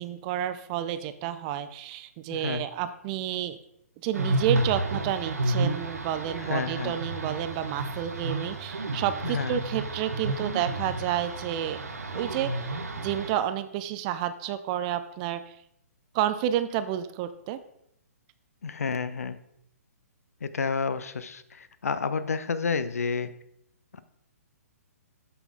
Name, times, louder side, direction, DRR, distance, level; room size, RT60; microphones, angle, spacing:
voice 1, 0.0-3.6 4.0-11.8 12.1-12.8 13.0-15.6 16.1-17.6, right 11 dB, 25° right, 12 dB, 0.5 m, -30 dB
voice 2, 2.3-2.7 6.4-6.9 9.2-9.6 18.6-19.4 20.4-23.3 23.9-24.0, left 5 dB, 65° left, 13 dB, 0.6 m, -30 dB
sound 1, 4.1-13.3, right 2 dB, 70° right, 1.0 m, -31 dB
7.9 x 6.0 x 3.9 m, 0.74 s
figure-of-eight pair, 125°, 9 cm